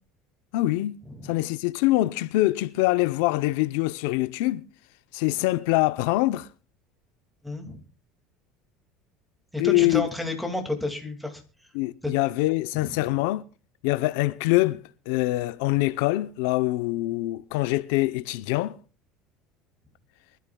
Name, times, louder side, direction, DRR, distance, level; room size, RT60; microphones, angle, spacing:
voice 1, 0.5-4.6 5.1-6.5 9.6-10.1 11.7-13.4 13.8-18.8, left 18 dB, 80° left, 0.6 m, -24 dB
voice 2, 7.4-7.8 9.5-11.4 12.0-12.1 12.8-13.1, left 2 dB, ahead, 2.2 m, -31 dB
24.5 x 12.5 x 2.3 m
cardioid pair, 155°, 0 cm